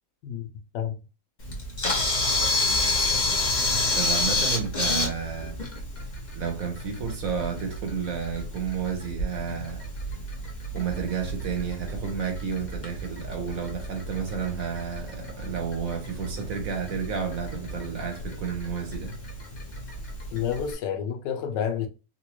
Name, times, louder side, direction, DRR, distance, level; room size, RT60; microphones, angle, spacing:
Camera, 1.4-20.7, left 2 dB, 35° left, 0.8 m, -30 dB
voice 1, 3.9-5.6 6.3-9.8 10.7-19.2, right 6 dB, 60° right, 1.1 m, -31 dB
voice 2, 20.3-21.9, left 8 dB, 80° left, 1.3 m, -29 dB
4.0 x 2.2 x 2.9 m
omnidirectional pair, 1.9 m